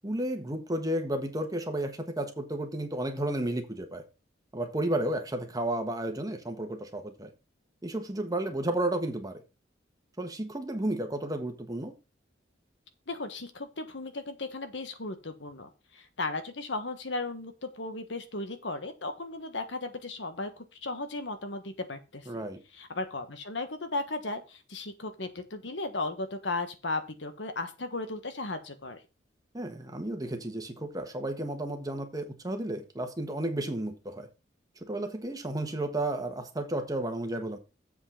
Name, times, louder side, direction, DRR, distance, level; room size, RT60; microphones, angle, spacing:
voice 1, 0.0-4.0 4.5-7.3 7.8-9.4 10.2-11.9 22.3-22.6 29.5-34.3 34.8-37.6, right 1 dB, 20° right, 1.4 m, -32 dB
voice 2, 13.1-22.4 22.7-29.0, left 2 dB, 75° left, 1.4 m, -36 dB
7.6 x 5.4 x 5.6 m
head